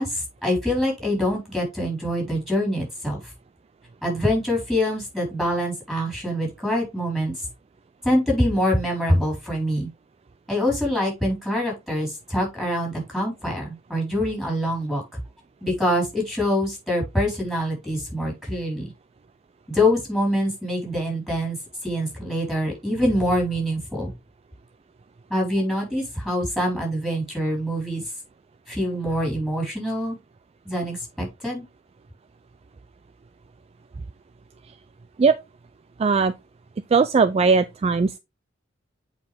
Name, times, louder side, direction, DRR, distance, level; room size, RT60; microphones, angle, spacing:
voice 1, 0.0-3.2 4.0-7.5 8.0-9.9 10.5-15.0 15.6-18.9 19.7-21.6 21.8-24.1 25.3-28.0 28.7-30.2 30.7-31.6, equal, ahead, 3.9 m, -25 dB
voice 2, 36.0-36.3 36.9-38.2, right 4 dB, 30° right, 0.3 m, -19 dB
8.0 x 4.8 x 3.3 m
head